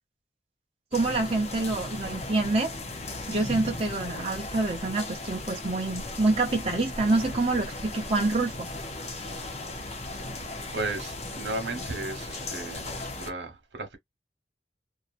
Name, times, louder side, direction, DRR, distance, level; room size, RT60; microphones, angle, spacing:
sound 1, 0.9-13.3, left 2 dB, 35° left, 0.8 m, -37 dB
voice 1, 0.9-2.7 3.3-8.7, right 2 dB, 35° right, 0.7 m, -27 dB
voice 2, 10.7-14.0, right 2 dB, 85° right, 1.1 m, -35 dB
2.8 x 2.4 x 2.5 m
head